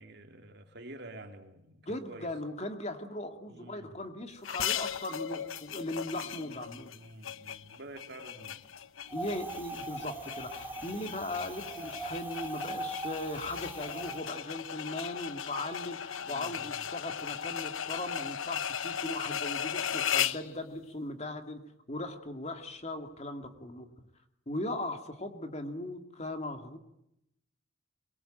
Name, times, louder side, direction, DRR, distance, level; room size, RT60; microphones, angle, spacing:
voice 1, 0.0-2.3 3.4-3.9 6.1-8.6 10.7-10.9 16.0-16.9, right 1 dB, 55° right, 5 dB, 3.2 m, -49 dB
voice 2, 1.9-6.9 9.1-21.6 21.9-23.9 24.5-26.8, left 1 dB, 35° left, 6 dB, 2.4 m, -38 dB
sound 1, 4.4-20.5, left 9 dB, 90° left, 1.0 m, -37 dB
Wind, 9.1-14.2, right 2 dB, 10° right, 2.8 m, -41 dB
23.5 x 22.5 x 9.1 m, 0.83 s
head